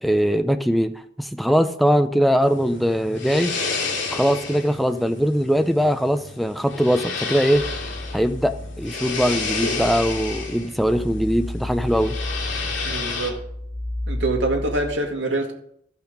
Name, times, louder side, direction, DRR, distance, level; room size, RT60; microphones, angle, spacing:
voice 1, 0.0-3.5 4.1-7.7 8.1-12.2, equal, ahead, 9 dB, 0.4 m, -21 dB
sound 1, 2.4-13.3, left 4 dB, 70° left, 2.6 m, -31 dB
sound 2, 7.5-15.0, left 1 dB, 50° left, 1.1 m, -32 dB
voice 2, 12.8-13.4 14.1-15.5, right 2 dB, 70° right, 2 dB, 2.0 m, -25 dB
14.0 x 5.7 x 5.1 m, 0.70 s
head